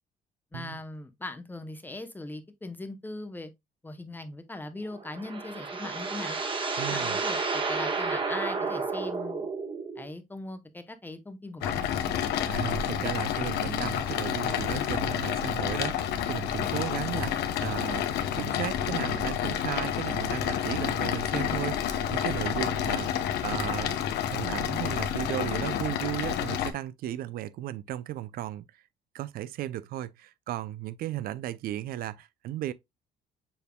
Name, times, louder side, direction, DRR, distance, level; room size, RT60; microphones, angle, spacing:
voice 1, 0.5-3.5 3.8-6.4 6.9-9.5 10.0-12.1, left 2 dB, 10° left, 0.8 m, -40 dB
sound 1, 4.9-10.1, right 4 dB, 30° right, 1.2 m, -31 dB
voice 2, 6.8-7.2 12.5-18.1 18.4-23.1 23.4-24.0 24.3-28.8 29.1-32.7, right 13 dB, 60° right, 0.4 m, -35 dB
sound 2, 11.6-26.7, left 9 dB, 75° left, 0.8 m, -29 dB
7.0 x 3.4 x 2.2 m
cardioid pair, 110°, 17 cm